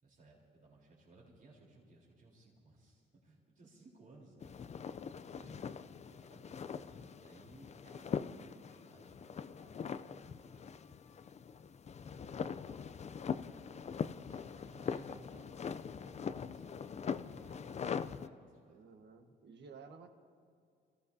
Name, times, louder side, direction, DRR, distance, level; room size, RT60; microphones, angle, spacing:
voice 1, 0.0-4.6 5.3-5.7 6.0-11.3 12.0-12.9 14.1-18.8, right 2 dB, 40° right, -4 dB, 3.7 m, -61 dB
sound 1, 4.4-18.3, left 6 dB, 35° left, 0.4 m, -42 dB
voice 2, 18.7-20.1, right 5 dB, 60° right, 6 dB, 1.4 m, -54 dB
26.5 x 15.0 x 2.7 m, 2.3 s
cardioid pair, 90°, 20 cm